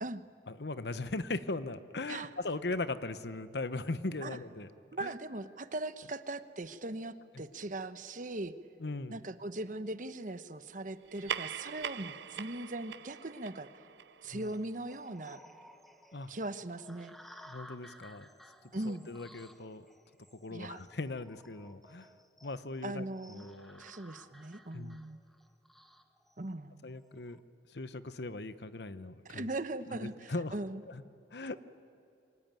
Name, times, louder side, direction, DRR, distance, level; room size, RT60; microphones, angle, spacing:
voice 1, 0.5-4.7 5.0-5.1 7.3-7.4 8.8-9.2 14.3-14.5 16.1-16.3 17.5-18.3 18.8-19.9 20.3-22.1 22.4-23.8 24.7-25.0 26.8-27.4 27.7-29.5 29.9-30.6 30.9-31.0 31.3-31.6, left 2 dB, 70° left, 13 dB, 1.0 m, -39 dB
voice 2, 4.9-8.5 9.1-13.7 14.2-15.4 16.3-17.1 18.7-19.1 20.5-20.8 22.8-23.4 23.8-25.2 26.4-26.9 29.2-30.8, right 2 dB, 45° right, 11 dB, 1.1 m, -39 dB
sound 1, 11.0-15.9, right 8 dB, 80° right, 0.7 m, -43 dB
sound 2, 14.4-27.4, equal, ahead, 1.3 m, -57 dB
27.5 x 23.5 x 9.1 m, 2.7 s
head